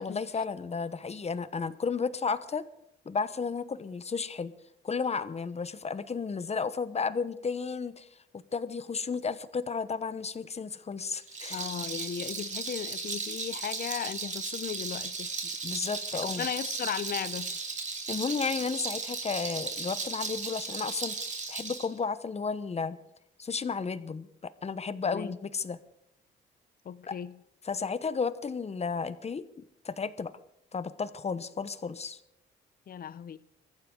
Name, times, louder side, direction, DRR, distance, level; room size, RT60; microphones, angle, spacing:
voice 1, 0.0-2.6 3.0-4.5 4.8-8.1 8.5-11.6 15.6-16.5 18.1-21.1 21.5-23.0 23.4-25.8 27.1-27.2 27.6-30.3 30.7-32.2, left 5 dB, 35° left, 1.1 m, -33 dB
Rattle, 11.2-21.9, right 4 dB, 35° right, 2.8 m, -36 dB
voice 2, 11.5-15.3 16.2-17.6 25.1-25.4 26.8-27.4 32.9-33.4, left 8 dB, 50° left, 0.7 m, -36 dB
23.5 x 14.5 x 3.9 m
cardioid pair, 90°, 20 cm